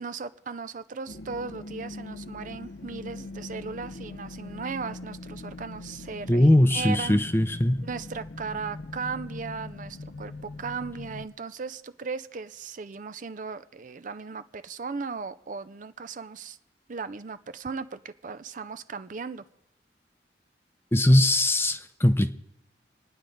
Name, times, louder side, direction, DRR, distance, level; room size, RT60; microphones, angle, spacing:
voice 1, 0.0-7.2 7.8-16.6 16.9-19.4, right 5 dB, 45° right, 12 dB, 0.5 m, -37 dB
sound 1, 1.1-11.3, left 2 dB, 75° left, 0.7 m, -41 dB
voice 2, 6.3-7.8 20.9-22.3, left 1 dB, 15° left, 9 dB, 0.6 m, -20 dB
28.0 x 9.8 x 3.9 m, 0.89 s
head